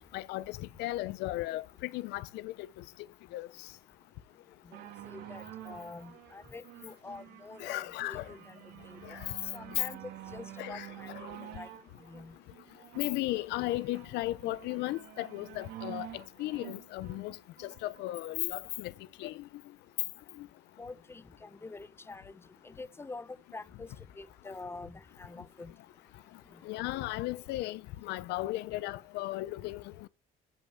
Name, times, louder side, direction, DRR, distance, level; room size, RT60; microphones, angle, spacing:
voice 1, 0.1-2.7 3.3-3.5 7.6-8.2 9.0-9.2 10.6-11.3 13.0-18.9 19.2-19.4 20.4-20.5 26.6-30.1, left 17 dB, 90° left, 0.9 m, -36 dB
sound 1, 4.7-18.3 19.0-19.1, right 13 dB, 80° right, 3.7 m, -49 dB
voice 2, 5.1-8.6 8.9-9.0 9.5-11.7 12.1-12.3 20.8-22.4 22.6-23.9 24.2-25.7, left 3 dB, 15° left, 1.0 m, -46 dB
14.5 x 5.7 x 8.0 m
cardioid pair, 110°, 17 cm